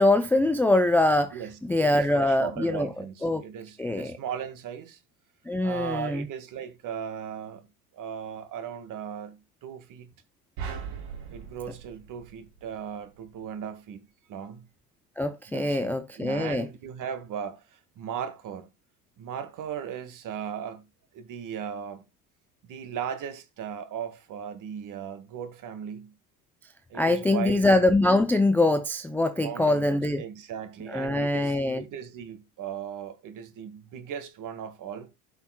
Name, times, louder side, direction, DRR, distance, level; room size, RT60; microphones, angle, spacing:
voice 1, 0.0-2.9 3.2-3.4 3.8-4.2 5.5-6.3 15.2-16.7 26.9-30.2 30.9-31.8, left 2 dB, 5° left, 0.4 m, -23 dB
voice 2, 1.3-5.0 5.6-7.7 7.9-10.1 11.3-14.7 15.5-18.7 19.2-20.8 21.1-22.0 22.6-26.1 26.9-27.7 29.4-35.1, right 8 dB, 45° right, 1.6 m, -37 dB
sound 1, 10.6-13.0, right 6 dB, 70° right, 3.2 m, -39 dB
15.5 x 5.7 x 2.2 m
supercardioid pair, 100°, 44 cm